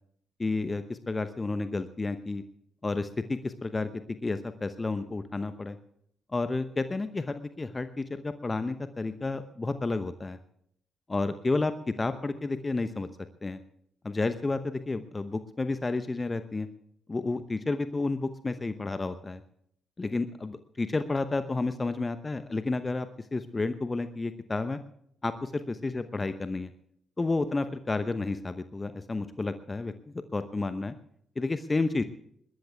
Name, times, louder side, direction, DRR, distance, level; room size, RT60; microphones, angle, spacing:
voice 1, 0.4-2.4 2.8-3.9 4.2-5.8 6.3-10.4 11.1-13.1 13.4-13.6 14.0-16.7 17.1-19.4 20.0-24.8 25.2-26.7 27.2-30.9 31.4-32.0, left 3 dB, 25° left, 11 dB, 0.9 m, -31 dB
21.0 x 20.5 x 2.3 m, 0.70 s
figure-of-eight pair, 40°, 0 cm